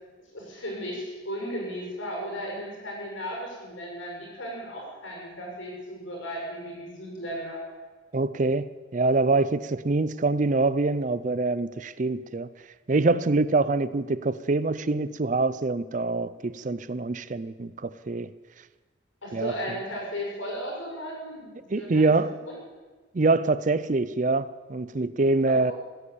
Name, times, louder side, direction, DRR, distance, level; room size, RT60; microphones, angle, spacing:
voice 1, 0.3-7.6 19.2-22.6 25.5-25.7, equal, 90° left, 6.7 m, -35 dB
voice 2, 8.1-12.5 12.9-18.3 19.3-19.5 21.7-22.4 23.1-25.7, right 3 dB, 40° right, 0.5 m, -25 dB
16.0 x 10.0 x 8.4 m
head